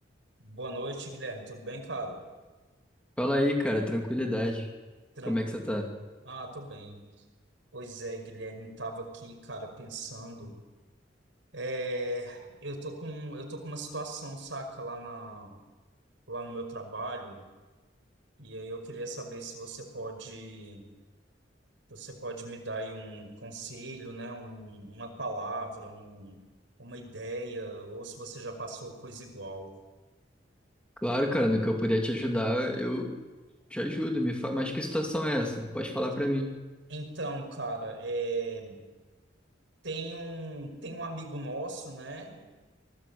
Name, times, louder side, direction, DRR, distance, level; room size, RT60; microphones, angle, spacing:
voice 1, 0.4-2.3 5.2-5.4 5.7-5.8 6.2-7.0 7.7-10.5 11.5-15.6 16.3-17.4 18.4-20.8 21.9-26.4 26.8-29.8 36.9-38.8 39.8-42.5, right 2 dB, 90° right, 4 dB, 5.4 m, -38 dB
voice 2, 3.2-4.7 5.3-5.9 31.0-33.1 33.7-36.5, equal, 5° left, 1 dB, 2.5 m, -28 dB
25.0 x 19.0 x 8.6 m, 1.2 s
head